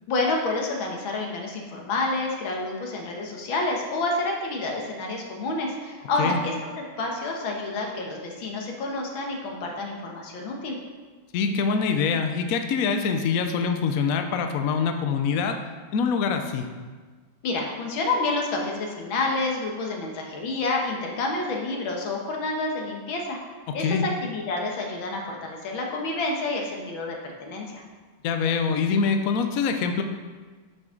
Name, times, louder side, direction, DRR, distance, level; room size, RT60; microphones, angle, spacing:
voice 1, 0.1-6.5 7.0-10.8 17.4-23.4 23.7-27.8, left 2 dB, 65° left, 0 dB, 2.0 m, -29 dB
voice 2, 11.3-15.6 15.9-16.7 23.8-24.0 28.2-30.0, left 5 dB, 85° left, 6 dB, 0.7 m, -24 dB
10.5 x 6.3 x 3.9 m, 1.4 s
omnidirectional pair, 2.4 m